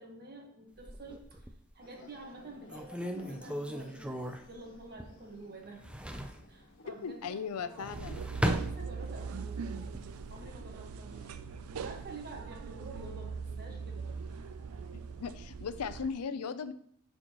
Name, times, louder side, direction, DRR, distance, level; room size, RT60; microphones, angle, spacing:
voice 1, 0.0-1.5 1.7-4.1 4.5-5.9 6.5-8.1 8.4-9.8 10.3-11.3 11.7-14.1, right 2 dB, 45° right, 1 dB, 1.4 m, -49 dB
sound 1, 0.8-1.7 2.2-2.3 2.7-5.4 5.6-6.5 7.6-9.4 9.8-10.4, equal, 5° right, 0.4 m, -37 dB
sound 2, 1.8-16.0, left 2 dB, 60° left, 1.5 m, -60 dB
voice 2, 6.9-8.3 15.2-16.7, left 6 dB, 85° left, 12 dB, 0.5 m, -37 dB
sound 3, 7.9-16.1, right 5 dB, 70° right, 0.4 m, -41 dB
11.0 x 4.3 x 3.0 m, 0.65 s
head